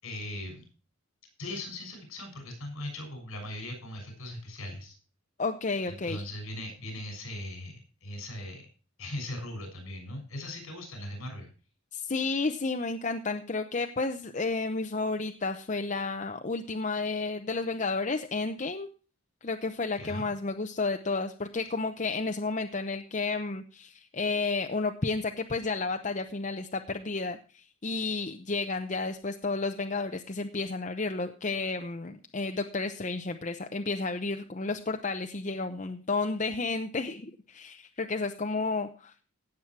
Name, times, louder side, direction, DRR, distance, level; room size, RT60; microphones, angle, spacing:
voice 1, 0.0-0.6 1.4-5.0 5.9-8.6 9.0-11.5 20.0-20.3, left 1 dB, 70° left, 4 dB, 6.5 m, -39 dB
voice 2, 5.4-6.2 11.9-18.9 19.4-39.2, left 3 dB, 35° left, 6 dB, 0.7 m, -32 dB
17.0 x 7.4 x 4.6 m, 0.37 s
head